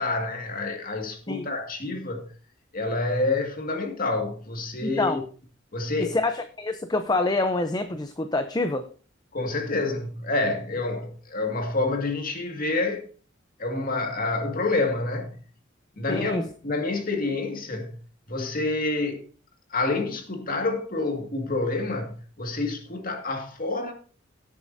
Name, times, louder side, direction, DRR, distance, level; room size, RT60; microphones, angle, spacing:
voice 1, 0.0-2.3 2.7-5.2 5.7-6.2 9.3-13.0 13.6-15.4 16.0-18.0 18.3-19.2 19.7-23.9, left 2 dB, 50° left, 2.1 m, -28 dB
voice 2, 4.8-5.2 6.0-8.9 16.1-16.4, left 2 dB, 20° left, 0.6 m, -26 dB
17.0 x 8.4 x 2.7 m
head